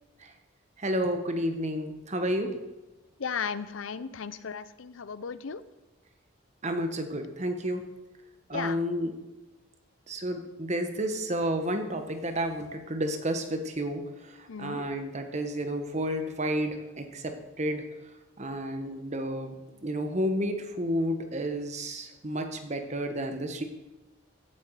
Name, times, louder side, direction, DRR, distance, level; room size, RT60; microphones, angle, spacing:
voice 1, 0.8-2.5 6.6-7.8 8.5-9.1 10.1-17.8 18.4-19.5 19.8-23.6, equal, 35° right, 6 dB, 1.3 m, -31 dB
voice 2, 3.2-5.6 8.5-8.8 14.5-14.8, left 6 dB, 80° left, 15 dB, 0.6 m, -35 dB
15.5 x 9.0 x 4.9 m, 1.1 s
head